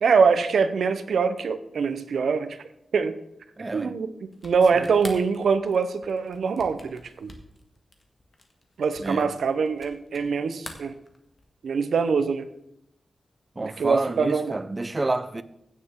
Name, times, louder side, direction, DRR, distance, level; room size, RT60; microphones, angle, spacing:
voice 1, 0.0-2.6 2.9-3.2 3.7-4.1 4.4-7.3 8.8-10.9 11.6-12.5 13.6-14.6, right 5 dB, 85° right, 0.7 m, -23 dB
voice 2, 3.6-4.0 4.7-4.9 9.0-9.3 13.6-15.4, right 2 dB, 25° right, 0.5 m, -29 dB
sound 1, 4.3-10.3 10.6-11.6, left 2 dB, 30° left, 1.5 m, -46 dB
16.0 x 6.6 x 3.7 m
wide cardioid pair, 110°, 0 cm